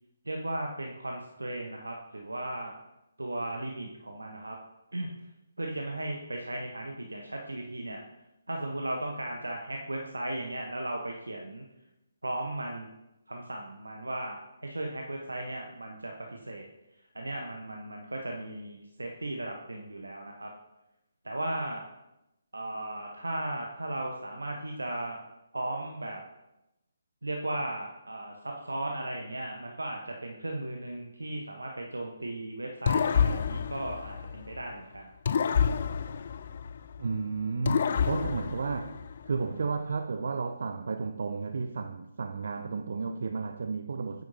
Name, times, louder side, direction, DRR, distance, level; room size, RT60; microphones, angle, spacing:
voice 1, 0.3-2.7 3.2-4.6 4.9-5.1 5.6-8.0 8.5-11.6 12.2-12.9 13.3-16.6 17.1-20.5 21.2-21.8 22.5-25.2 25.5-26.2 27.2-35.1, right 1 dB, 75° right, 1.0 m, -36 dB
sound 1, 32.9-34.7 35.3-37.1 37.6-39.4, left 7 dB, 45° left, 0.3 m, -29 dB
voice 2, 37.0-39.0 39.3-44.2, right 4 dB, 55° right, 0.4 m, -33 dB
9.2 x 7.6 x 2.8 m
figure-of-eight pair, 140°, 0 cm